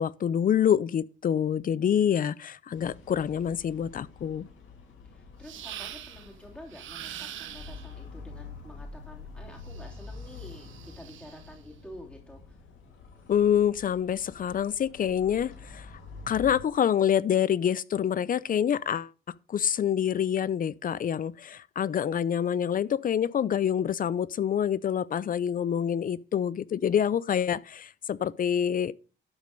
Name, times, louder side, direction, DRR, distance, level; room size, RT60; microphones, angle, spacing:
voice 1, 0.0-4.5 13.3-15.9 16.3-19.1 19.5-28.9, left 9 dB, 45° left, 0.5 m, -26 dB
sound 1, 2.7-16.6, left 4 dB, 75° left, 2.6 m, -47 dB
voice 2, 5.1-12.6 25.6-26.0, left 1 dB, 5° left, 3.0 m, -49 dB
sound 2, 5.4-6.3 6.7-7.9 9.6-11.5, right 11 dB, 75° right, 1.0 m, -43 dB
12.0 x 5.2 x 5.2 m
cardioid pair, 90°, 20 cm